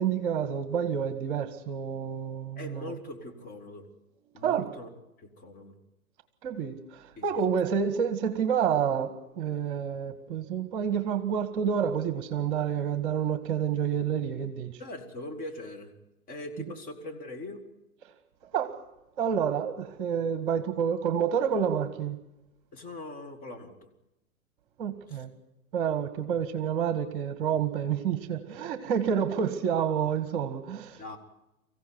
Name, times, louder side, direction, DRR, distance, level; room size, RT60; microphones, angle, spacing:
voice 1, 0.0-2.9 4.4-4.6 6.4-14.7 18.5-18.7 19.2-22.2 24.8-25.3 25.7-31.2, right 7 dB, 35° right, 12 dB, 1.8 m, -29 dB
voice 2, 2.6-3.9 4.3-4.9 5.2-5.7 7.2-7.4 14.8-15.9 16.3-17.6 22.7-23.9 25.1-25.2 31.0-31.2, left 2 dB, 20° left, 4 dB, 2.7 m, -41 dB
24.5 x 16.0 x 9.5 m, 0.94 s
figure-of-eight pair, 125°, 43 cm